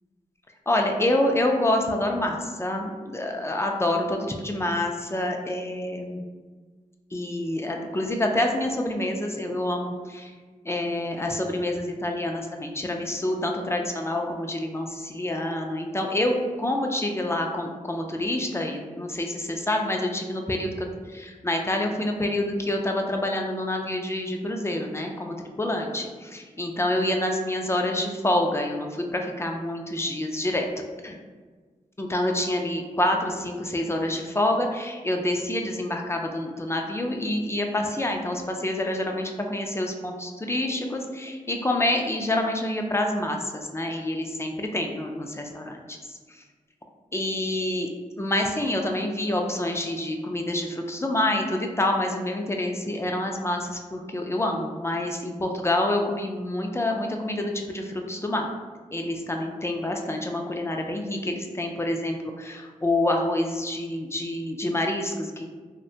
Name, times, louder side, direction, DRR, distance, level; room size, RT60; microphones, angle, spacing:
voice 1, 0.7-6.2 7.1-10.3 10.6-30.7 31.0-31.1 32.0-46.4 47.1-47.9 48.2-58.5 58.9-65.4, left 1 dB, 20° left, 2 dB, 0.3 m, -27 dB
2.8 x 2.1 x 2.6 m, 1.4 s
cardioid pair, 65°, 14 cm